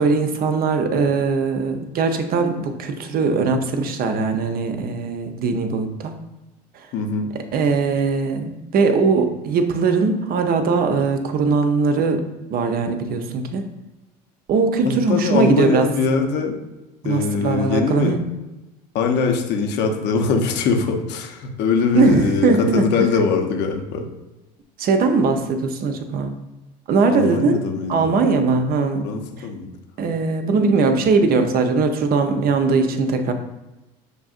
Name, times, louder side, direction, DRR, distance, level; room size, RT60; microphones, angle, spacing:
voice 1, 0.0-6.1 6.7-6.9 7.5-12.2 12.5-13.6 14.5-15.9 17.0-18.2 21.9-22.8 24.8-26.4 26.9-27.6 27.9-29.1 30.0-33.3, right 4 dB, 45° right, 7 dB, 0.7 m, -20 dB
voice 2, 6.9-7.3 14.8-16.6 17.0-18.1 18.9-24.1 27.1-28.1 29.0-29.7, left 5 dB, 55° left, 3 dB, 0.8 m, -22 dB
6.5 x 2.6 x 2.4 m, 1.0 s
hypercardioid pair, 80°, 21 cm